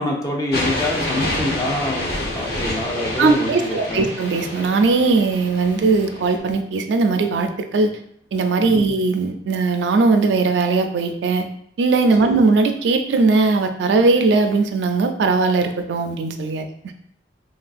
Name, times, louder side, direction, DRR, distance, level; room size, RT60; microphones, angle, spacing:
voice 1, 0.0-4.1 8.6-8.9 12.2-12.3, left 1 dB, 20° left, -1 dB, 0.5 m, -26 dB
sound 1, 0.5-6.4, left 1 dB, 60° left, 0.7 m, -28 dB
voice 2, 3.2-7.9 8.3-11.5 11.8-16.7, right 3 dB, 75° right, 6 dB, 0.3 m, -19 dB
3.2 x 2.5 x 2.3 m, 0.66 s
head